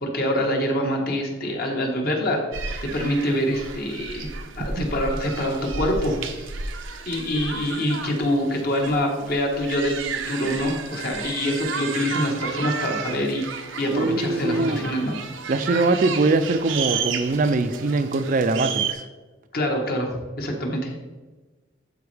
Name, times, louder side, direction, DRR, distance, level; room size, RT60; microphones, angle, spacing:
voice 1, 0.0-4.3 4.6-6.5 7.1-15.1 19.5-20.9, equal, 50° left, 1 dB, 1.3 m, -25 dB
sound 1, 2.5-18.9, right 5 dB, 80° right, 0.7 m, -33 dB
voice 2, 13.9-14.9 15.5-19.0, right 3 dB, 45° right, 10 dB, 0.4 m, -22 dB
11.5 x 4.3 x 3.4 m, 1.3 s
head